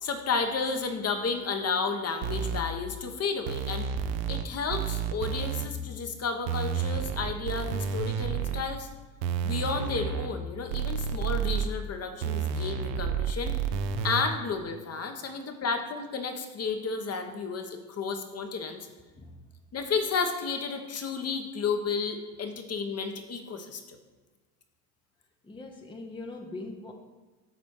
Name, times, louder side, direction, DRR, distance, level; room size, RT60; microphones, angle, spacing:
voice 1, 0.0-3.8 4.3-8.9 9.4-13.6 14.0-18.9 19.7-24.0, left 5 dB, 30° left, 6 dB, 1.0 m, -32 dB
sound 1, 2.2-2.6 3.5-4.4 4.7-5.7 6.5-8.6 9.2-10.3 10.7-11.7 12.2-14.2, right 7 dB, 70° right, 0.8 m, -30 dB
voice 2, 19.2-19.5 25.4-26.9, left 2 dB, 10° left, 3 dB, 0.7 m, -42 dB
7.6 x 4.1 x 6.3 m, 1.3 s
hypercardioid pair, 80°, 49 cm